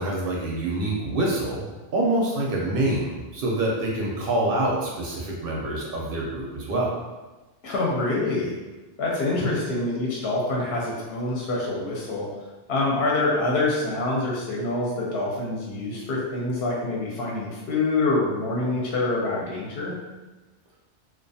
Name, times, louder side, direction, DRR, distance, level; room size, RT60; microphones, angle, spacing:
voice 1, 0.0-1.6 1.9-6.9 9.4-9.6, right 1 dB, 60° right, -3 dB, 0.6 m, -26 dB
voice 2, 7.6-8.5 9.0-12.3 12.7-20.0, left 2 dB, 65° left, -4 dB, 0.8 m, -26 dB
2.3 x 2.2 x 2.6 m, 1.2 s
omnidirectional pair, 1.2 m